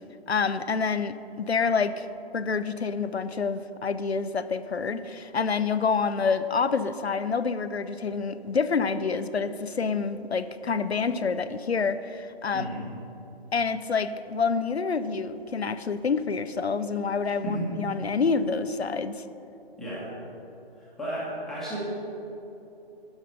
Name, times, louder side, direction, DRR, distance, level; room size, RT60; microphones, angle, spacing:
voice 1, 0.3-2.1 2.3-12.8 13.5-19.2, left 5 dB, 85° left, 12 dB, 0.6 m, -27 dB
voice 2, 20.8-21.8, right 1 dB, ahead, -10 dB, 1.4 m, -33 dB
11.5 x 6.0 x 5.6 m, 3.0 s
figure-of-eight pair, 150°, 31 cm